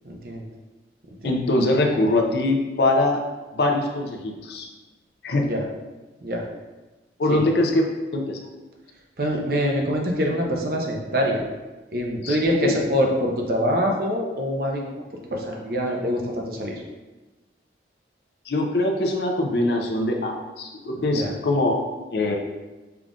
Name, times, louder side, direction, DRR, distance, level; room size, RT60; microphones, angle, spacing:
voice 1, 0.0-0.5 5.4-5.6 6.2-6.4 7.3-7.4 9.2-11.4 11.9-14.8 15.3-16.7 21.0-21.3, equal, 55° right, 0 dB, 0.7 m, -24 dB
voice 2, 1.2-3.2 3.5-4.7 5.2-5.5 7.2-7.9 8.1-8.4 12.2-12.4 12.6-12.8 18.5-21.8 22.1-22.4, left 2 dB, 65° left, 2 dB, 0.6 m, -22 dB
5.8 x 2.4 x 3.7 m, 1.1 s
head